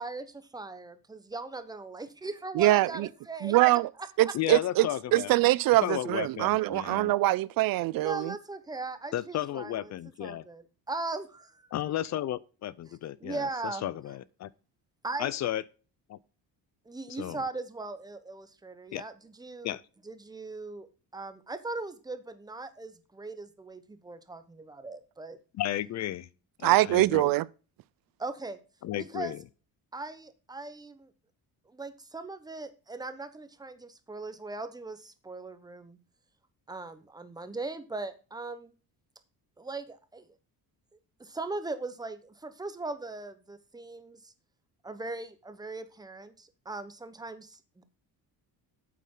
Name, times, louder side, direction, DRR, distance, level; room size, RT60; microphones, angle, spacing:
voice 1, 0.0-3.6 4.2-4.3 7.8-9.9 10.2-11.7 13.2-13.9 15.0-15.3 16.9-19.8 20.0-20.9 21.1-25.4 28.2-28.6 29.0-29.3 29.9-31.1 31.7-36.0 36.7-38.7 39.6-40.3 40.9-44.3 44.8-47.8, right 3 dB, 10° right, 0.9 m, -39 dB
voice 2, 2.6-3.1 3.4-3.9 4.2-4.9 5.1-8.3 26.6-27.5, right 17 dB, 65° right, 0.5 m, -23 dB
voice 3, 4.3-5.3 5.8-7.1 9.1-10.4 11.7-13.5 13.8-14.5 15.2-15.6 16.1-16.2 17.2-17.4 18.9-19.0 19.6-19.8 25.6-26.3 26.6-27.4 28.8-29.4, left 12 dB, 45° left, 0.4 m, -33 dB
8.5 x 8.4 x 3.7 m
cardioid pair, 155°, 37 cm